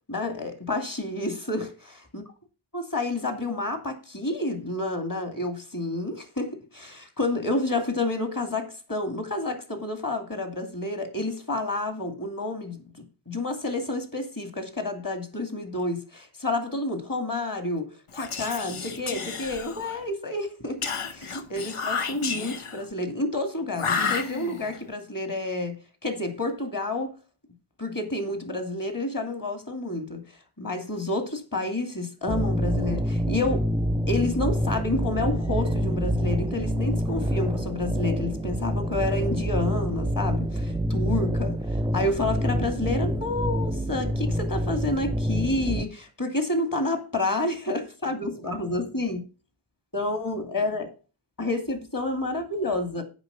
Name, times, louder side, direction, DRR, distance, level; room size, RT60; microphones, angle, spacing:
voice 1, 0.1-2.2 2.7-12.8 13.3-20.8 21.1-25.8 26.0-27.1 27.8-30.2 30.6-33.7 34.1-41.6 41.9-49.2 49.9-50.9 51.4-53.0, left 2 dB, 40° left, 2.4 m, -29 dB
Whispering, 18.1-20.1 20.8-22.8 23.7-24.8, left 5 dB, 80° left, 1.1 m, -31 dB
sound 1, 32.3-45.8, equal, 10° right, 0.6 m, -27 dB
7.9 x 5.4 x 6.8 m
wide cardioid pair, 55°, 50 cm